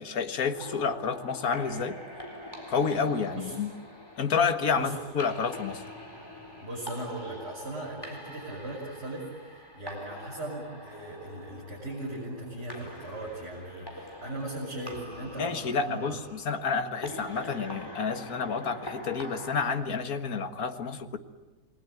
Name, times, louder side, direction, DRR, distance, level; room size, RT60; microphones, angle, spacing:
voice 1, 0.0-2.0 2.7-3.7 4.2-5.8 15.4-21.2, left 5 dB, 65° left, 8 dB, 2.0 m, -29 dB
sound 1, 0.5-19.7, left 1 dB, 15° left, 4.0 m, -44 dB
voice 2, 6.6-16.1, right 1 dB, 40° right, -5 dB, 7.6 m, -38 dB
29.0 x 21.0 x 9.3 m, 1.2 s
omnidirectional pair, 1.7 m